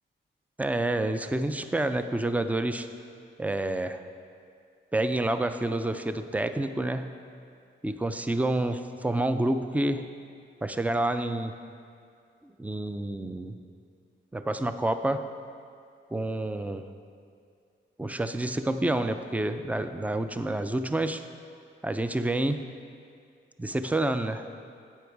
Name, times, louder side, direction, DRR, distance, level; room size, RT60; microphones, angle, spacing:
voice 1, 0.6-2.9 3.4-4.0 4.9-7.2 7.8-10.1 10.6-11.6 12.4-13.6 14.3-15.3 16.1-16.9 18.0-21.2 21.8-22.7 23.6-24.5, right 1 dB, 5° right, 9 dB, 0.5 m, -28 dB
10.5 x 7.9 x 4.7 m, 2.3 s
cardioid pair, 80°, 21 cm